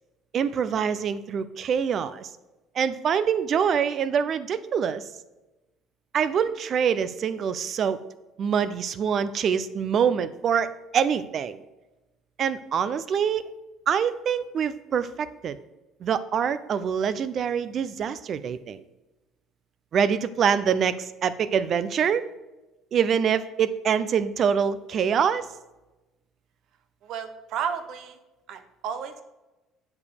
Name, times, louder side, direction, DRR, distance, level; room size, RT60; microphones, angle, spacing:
voice 1, 0.3-2.3 2.7-5.1 6.1-8.0 8.4-11.6 12.4-13.4 13.9-15.6 16.0-18.8 19.9-22.3 22.9-25.5, right 7 dB, 50° right, 14 dB, 0.6 m, -25 dB
voice 2, 27.0-28.2 28.5-29.2, right 7 dB, 65° right, 10 dB, 1.0 m, -32 dB
8.3 x 5.2 x 6.5 m, 1.1 s
cardioid pair, 100°, 0 cm